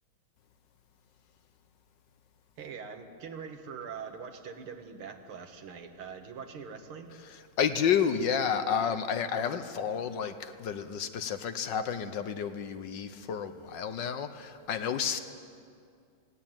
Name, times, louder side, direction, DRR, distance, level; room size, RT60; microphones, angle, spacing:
voice 1, 2.6-7.2, right 6 dB, 85° right, 5 dB, 2.3 m, -43 dB
voice 2, 7.6-15.2, left 7 dB, 65° left, 10 dB, 1.5 m, -30 dB
19.0 x 17.5 x 9.0 m, 2.3 s
omnidirectional pair, 2.3 m